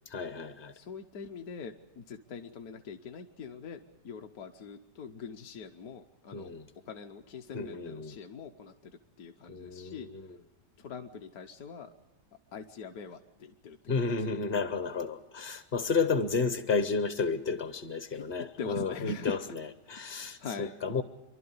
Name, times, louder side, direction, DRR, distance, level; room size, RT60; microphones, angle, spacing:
voice 1, 0.1-0.7 6.3-6.7 7.5-8.2 9.5-10.4 13.9-21.0, left 4 dB, 40° left, 0.9 m, -32 dB
voice 2, 0.7-3.8 4.0-6.5 6.9-8.7 9.2-10.1 10.8-11.9 12.5-14.2 18.1-18.2 18.6-19.4 20.4-21.0, left 5 dB, 60° left, 1.3 m, -43 dB
28.5 x 12.0 x 9.6 m
omnidirectional pair, 1.8 m